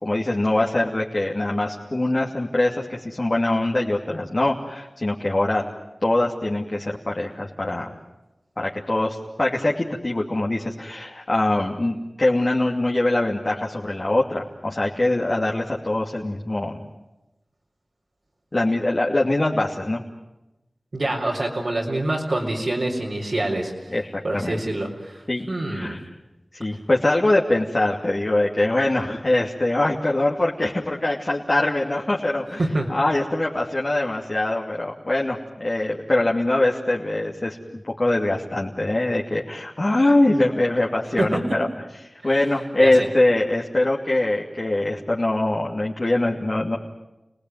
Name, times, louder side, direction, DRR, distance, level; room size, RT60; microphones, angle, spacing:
voice 1, 0.0-5.6 6.0-7.9 8.6-16.8 18.5-20.0 23.9-24.6 25.3-26.0 26.5-32.6 32.9-41.7 42.2-46.8, left 1 dB, 45° left, -2 dB, 2.7 m, -23 dB
voice 2, 20.9-23.9 24.2-26.0 32.6-32.9 41.2-41.6 42.8-43.1, right 1 dB, 75° right, -3 dB, 4.4 m, -26 dB
30.0 x 19.5 x 9.5 m, 0.97 s
wide cardioid pair, 45°, 0 cm